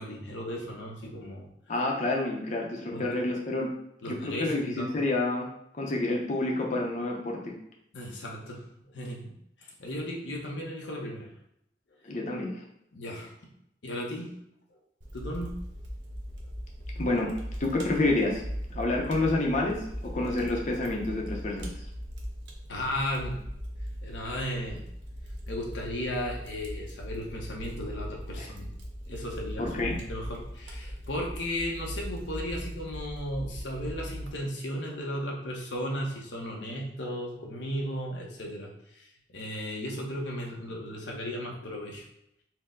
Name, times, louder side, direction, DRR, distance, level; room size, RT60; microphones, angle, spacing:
voice 1, 0.0-1.5 2.9-3.1 4.0-4.9 7.9-9.3 9.6-11.3 12.9-13.3 13.8-14.3 15.1-15.6 22.7-23.4 24.0-24.8 25.5-28.7 29.1-42.0, equal, 90° left, -1 dB, 0.8 m, -35 dB
voice 2, 1.7-3.7 4.1-5.5 5.8-7.5 12.0-12.5 17.0-18.4 18.8-19.8 20.1-21.7 28.4-28.5 29.6-30.0, left 2 dB, 45° left, -1 dB, 0.6 m, -28 dB
Fire, 15.0-34.3, equal, 80° right, 0.8 m, -39 dB
4.4 x 2.1 x 3.7 m, 0.77 s
head